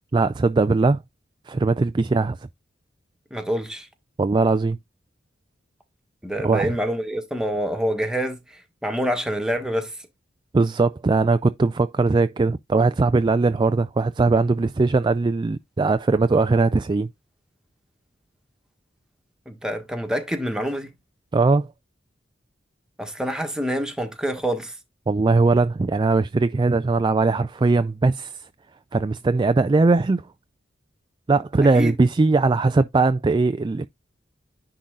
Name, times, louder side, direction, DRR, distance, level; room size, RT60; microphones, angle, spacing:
voice 1, 0.1-1.0 1.5-2.4 4.2-4.8 6.4-6.7 10.5-17.1 21.3-21.7 25.1-28.5 28.9-30.2 31.3-33.9, right 3 dB, 25° right, 0.3 m, -20 dB
voice 2, 3.3-3.9 6.2-9.9 19.4-20.9 23.0-24.8 31.7-31.9, equal, 5° right, 1.5 m, -26 dB
10.0 x 3.8 x 3.8 m
head